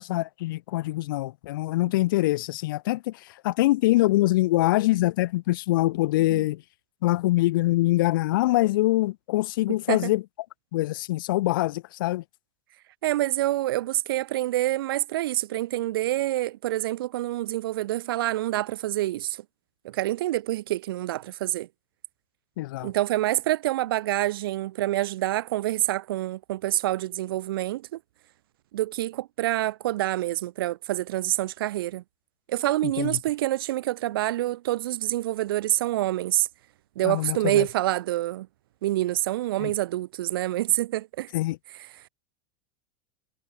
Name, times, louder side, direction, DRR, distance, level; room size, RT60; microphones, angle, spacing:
voice 1, 0.0-6.6 7.0-10.2 10.7-12.2 22.6-22.9 32.8-33.2 37.0-37.7 39.6-39.7 41.3-41.6, left 18 dB, 65° left, 0.5 m, -24 dB
voice 2, 9.7-10.1 13.0-19.4 19.8-21.7 22.8-28.0 28.7-32.0 32.5-36.5 37.0-38.5 38.8-41.3, right 15 dB, 75° right, 1.8 m, -27 dB
supercardioid pair, 175°, 12 cm